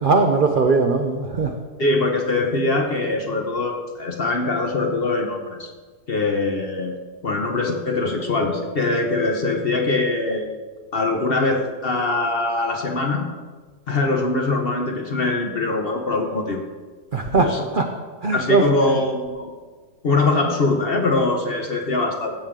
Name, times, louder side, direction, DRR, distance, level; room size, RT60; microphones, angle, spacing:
voice 1, 0.0-1.5 17.1-17.9 18.2-18.6, right 3 dB, 75° right, 4 dB, 0.4 m, -19 dB
voice 2, 1.8-5.7 6.1-10.5 10.9-13.3 13.9-16.7 17.4-17.7 18.3-19.5 20.0-22.3, left 2 dB, 45° left, 3 dB, 0.8 m, -22 dB
16.0 x 7.3 x 3.7 m, 1.4 s
omnidirectional pair, 1.9 m